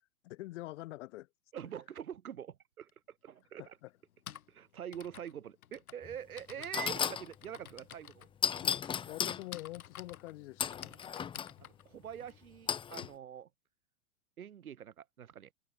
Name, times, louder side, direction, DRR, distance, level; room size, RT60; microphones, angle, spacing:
voice 1, 0.2-1.3 3.6-3.9 8.6-8.8 9.0-11.0, left 18 dB, 55° left, 2.7 m, -45 dB
voice 2, 1.5-3.8 4.5-8.3 10.9-11.0 11.6-13.5 14.4-15.5, right 9 dB, 80° right, 2.6 m, -45 dB
Typing, 2.9-3.0 4.0-13.1, left 10 dB, 80° left, 1.5 m, -52 dB
sound 1, 6.0-6.2 6.7-7.3 8.4-9.4 10.6-11.5 12.7-13.1, left 8 dB, 10° left, 0.7 m, -34 dB
hypercardioid pair, 115°, 42 cm